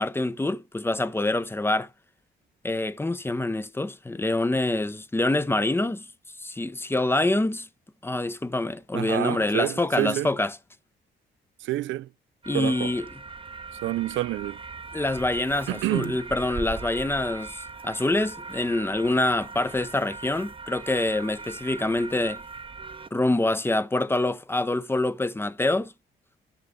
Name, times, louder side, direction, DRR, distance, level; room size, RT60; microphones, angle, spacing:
voice 1, 0.0-1.9 2.6-6.1 6.4-7.7 8.0-10.6 12.5-13.0 14.9-22.4 23.1-25.9, left 2 dB, 10° left, 0.7 m, -26 dB
voice 2, 8.9-10.3 11.6-12.1 12.5-12.9 13.8-14.6 15.7-16.2, right 16 dB, 75° right, 0.4 m, -28 dB
sound 1, 12.4-23.1, right 4 dB, 25° right, 0.8 m, -40 dB
10.5 x 5.4 x 3.7 m
cardioid pair, 90°, 20 cm